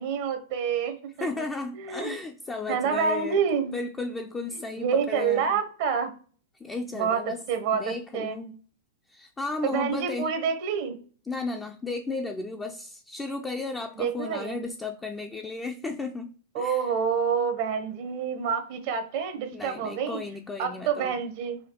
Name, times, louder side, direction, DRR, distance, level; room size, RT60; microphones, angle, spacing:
voice 1, 0.0-1.3 1.7-2.1 2.7-3.8 4.5-6.1 6.9-8.4 9.6-11.0 14.0-14.6 16.5-20.2 20.6-21.6, right 6 dB, 55° right, 8 dB, 0.7 m, -28 dB
voice 2, 1.2-3.4 3.7-5.6 6.6-7.4 7.7-8.5 9.1-10.3 11.3-16.8 19.5-21.1, left 3 dB, 15° left, 3 dB, 0.4 m, -34 dB
5.0 x 2.3 x 2.8 m, 0.42 s
hypercardioid pair, 115°, 0 cm